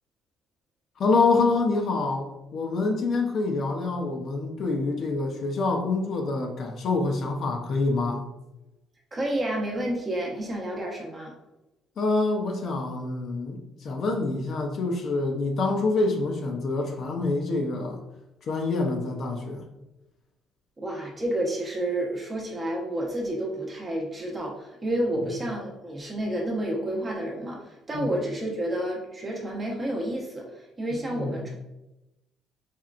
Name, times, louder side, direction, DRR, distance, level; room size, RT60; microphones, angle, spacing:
voice 1, 1.0-8.2 12.0-18.0 18.4-19.7 27.9-28.1 30.9-31.4, left 3 dB, 45° left, 3 dB, 0.6 m, -26 dB
voice 2, 9.1-11.3 20.8-31.5, right 1 dB, 20° right, -2 dB, 0.9 m, -30 dB
4.3 x 3.6 x 2.4 m, 0.96 s
cardioid pair, 145°, 0 cm